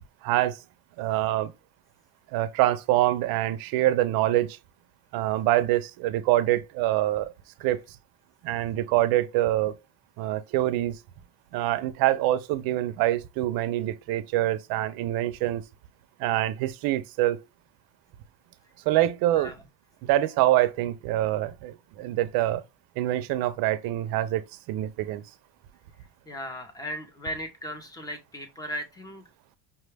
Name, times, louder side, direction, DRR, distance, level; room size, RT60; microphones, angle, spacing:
voice 1, 0.2-0.6 1.0-1.5 2.3-4.6 5.1-7.3 7.6-7.8 8.4-9.7 10.2-11.0 11.5-15.6 16.2-17.4 18.9-19.5 20.0-22.6 23.0-24.4 24.7-25.2, right 14 dB, 55° right, 0.5 m, -25 dB
voice 2, 26.3-29.2, equal, 10° left, 0.5 m, -37 dB
5.6 x 2.2 x 3.2 m
cardioid pair, 160°, 44 cm